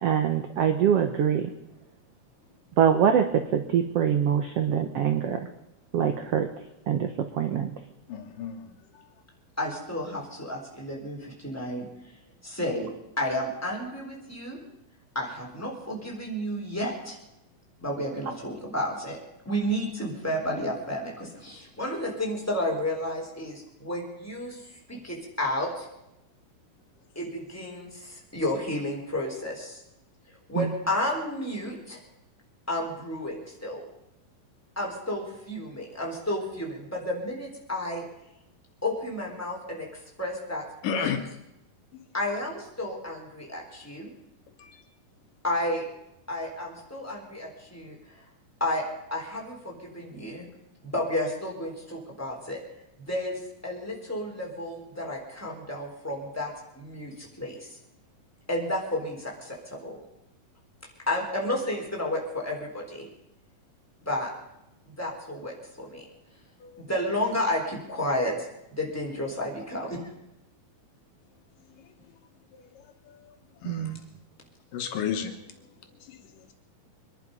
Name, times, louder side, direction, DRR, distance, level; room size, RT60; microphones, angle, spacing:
voice 1, 0.0-1.5 2.8-5.4 5.9-6.5 6.9-7.1 7.3-7.7 30.6-30.7 73.6-74.0, right 8 dB, 75° right, 7 dB, 1.4 m, -24 dB
voice 2, 8.1-8.5 40.8-41.2 66.6-66.8 73.6-73.9 74.7-75.3, left 8 dB, 70° left, 6 dB, 2.6 m, -30 dB
voice 3, 9.6-11.9 12.4-12.9 13.2-14.6 15.1-17.2 17.8-19.2 19.4-25.9 27.1-29.8 30.3-32.0 32.7-33.8 34.7-38.0 38.8-40.6 40.9-41.1 42.1-44.1 45.4-45.8 46.3-48.2 48.6-48.8 49.1-50.5 50.8-52.6 53.1-57.8 58.5-60.0 61.1-63.1 64.0-64.3 65.0-66.0 66.8-68.3 68.7-70.0, left 1 dB, 5° left, -2 dB, 3.5 m, -32 dB
24.5 x 11.0 x 5.4 m, 0.87 s
omnidirectional pair, 4.1 m